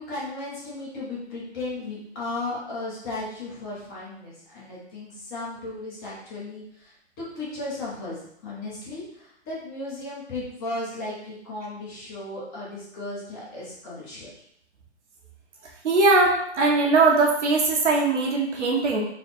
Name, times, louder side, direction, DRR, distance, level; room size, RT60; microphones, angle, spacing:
voice 1, 0.0-8.2 8.4-14.3, left 2 dB, 20° left, -7 dB, 1.0 m, -35 dB
voice 2, 15.8-19.0, right 3 dB, 80° right, -1 dB, 1.2 m, -20 dB
4.1 x 2.3 x 4.2 m, 0.72 s
hypercardioid pair, 160°, 35 cm